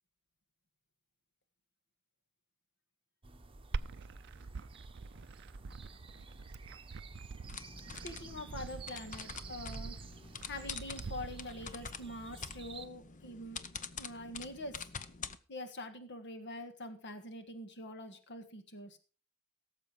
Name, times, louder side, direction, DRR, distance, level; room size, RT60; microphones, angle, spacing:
sound 1, 3.2-12.9, right 3 dB, 25° right, 1.0 m, -51 dB
Glass, 3.7-11.7, right 4 dB, 55° right, 0.5 m, -45 dB
sound 2, 7.5-15.4, left 6 dB, 35° left, 0.8 m, -46 dB
voice 1, 8.0-9.9 10.4-13.6 14.0-14.9 15.5-19.0, left 1 dB, 55° left, 8 dB, 1.7 m, -45 dB
17.5 x 7.5 x 5.2 m, 0.37 s
head